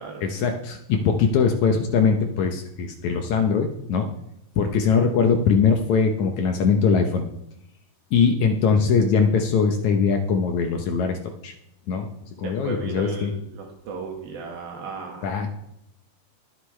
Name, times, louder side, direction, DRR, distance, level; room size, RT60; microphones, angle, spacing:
voice 1, 0.2-4.1 4.6-7.3 8.1-11.2 11.4-11.5 11.9-12.1 12.4-13.3 15.2-15.5, left 5 dB, 70° left, 4 dB, 1.9 m, -21 dB
voice 2, 12.4-15.3, right 4 dB, 80° right, 0 dB, 3.5 m, -35 dB
20.5 x 8.2 x 3.2 m, 0.82 s
omnidirectional pair, 4.2 m